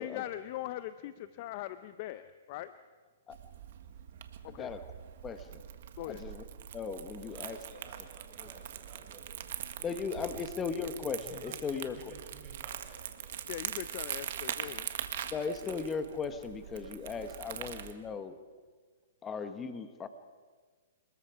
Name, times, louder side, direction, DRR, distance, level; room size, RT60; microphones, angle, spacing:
voice 1, 0.0-2.7 4.4-4.7 6.0-6.2 13.5-14.9 15.2-15.3, left 14 dB, 45° left, 13 dB, 0.7 m, -41 dB
Crumpling crinkling, 3.3-17.9, right 10 dB, 60° right, 1.6 m, -42 dB
voice 2, 4.4-4.8 5.2-5.6 6.0-6.4 6.7-7.6 8.4-8.5 9.8-12.2 15.3-18.4 19.2-20.1, left 5 dB, 20° left, 9 dB, 1.3 m, -37 dB
voice 3, 7.2-10.5 11.2-13.6 13.9-14.1, right 3 dB, 10° right, -6 dB, 7.2 m, -56 dB
27.5 x 20.5 x 5.0 m, 1.5 s
hypercardioid pair, 135°, 0 cm